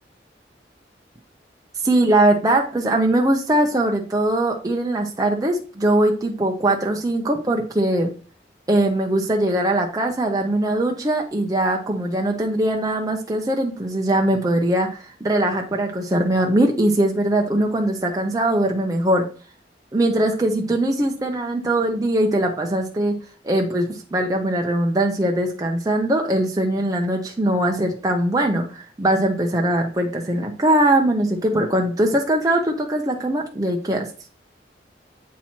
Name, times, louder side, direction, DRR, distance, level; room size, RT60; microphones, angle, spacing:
voice 1, 1.8-8.1 8.7-19.3 19.9-23.1 23.4-34.1, right 1 dB, 20° right, 1 dB, 0.6 m, -21 dB
8.3 x 3.0 x 4.3 m, 0.40 s
head